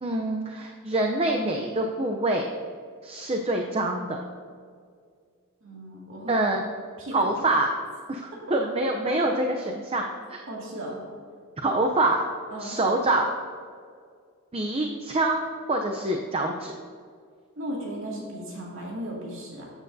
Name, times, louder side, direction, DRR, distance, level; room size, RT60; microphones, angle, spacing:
voice 1, 0.0-2.5 3.0-4.2 6.3-6.6 7.1-7.7 8.1-10.4 11.6-12.2 12.6-13.3 14.5-16.7, right 2 dB, 25° right, 2 dB, 0.6 m, -25 dB
voice 2, 5.6-6.4 7.0-7.3 10.5-11.0 12.5-12.8 17.6-19.7, right 1 dB, 65° right, -3 dB, 2.2 m, -36 dB
13.0 x 8.9 x 2.7 m, 2.1 s
head